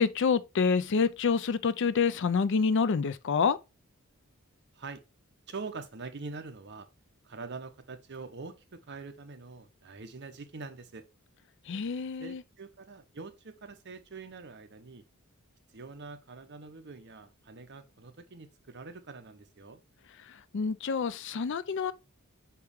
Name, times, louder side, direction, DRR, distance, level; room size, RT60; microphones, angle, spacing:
voice 1, 0.0-3.6 11.7-12.4 20.3-21.9, left 5 dB, 60° left, 0.4 m, -27 dB
voice 2, 5.5-6.9 7.2-11.1 12.2-15.0 15.7-19.8, right 4 dB, 55° right, 0.9 m, -44 dB
5.9 x 4.7 x 3.4 m
head